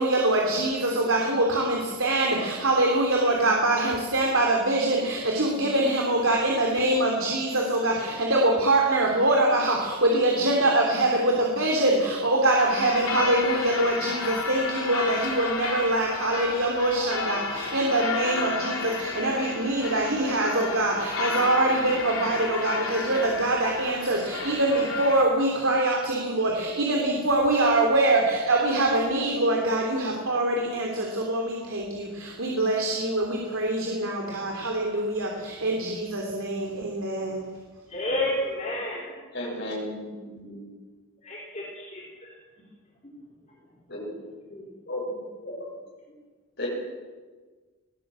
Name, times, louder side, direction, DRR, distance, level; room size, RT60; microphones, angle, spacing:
voice 1, 0.0-37.5, right 2 dB, 75° right, 0 dB, 3.3 m, -24 dB
sound 1, 12.6-25.2, left 4 dB, 70° left, 3.6 m, -32 dB
voice 2, 37.9-39.2 41.3-42.4, left 1 dB, 35° left, -4 dB, 3.7 m, -30 dB
voice 3, 39.3-40.6 43.9-44.1 44.9-45.0 45.4-45.7 46.6-46.7, left 1 dB, 50° left, -6 dB, 7.5 m, -34 dB
20.5 x 18.0 x 7.6 m, 1.4 s
head